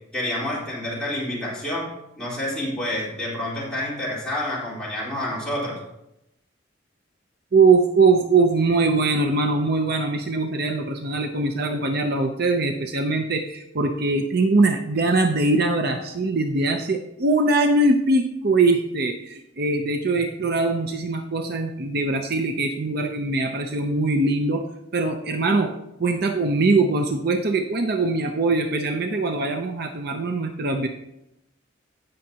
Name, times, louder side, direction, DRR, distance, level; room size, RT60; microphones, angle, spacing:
voice 1, 0.1-1.9 2.2-5.8, left 1 dB, 5° left, -8 dB, 4.0 m, -28 dB
voice 2, 7.5-24.7 24.9-25.7 26.0-30.9, right 3 dB, 55° right, 5 dB, 0.7 m, -22 dB
16.5 x 6.5 x 2.9 m, 0.86 s
head